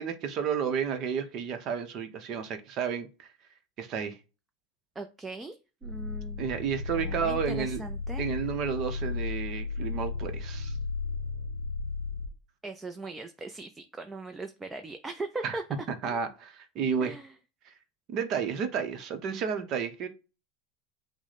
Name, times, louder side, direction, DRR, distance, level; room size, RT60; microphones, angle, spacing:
voice 1, 0.0-3.3 3.8-4.2 6.4-7.8 8.2-10.8 15.4-15.6 15.9-17.2 17.7-17.8 18.1-20.1, right 7 dB, 45° right, 0.8 m, -31 dB
voice 2, 5.0-6.4 7.0-8.2 12.6-15.6 16.0-16.2 17.0-17.3, right 2 dB, 15° right, 0.5 m, -39 dB
sound 1, 5.8-12.3, left 4 dB, 90° right, 0.8 m, -34 dB
6.0 x 2.1 x 4.1 m
supercardioid pair, 110°, 0 cm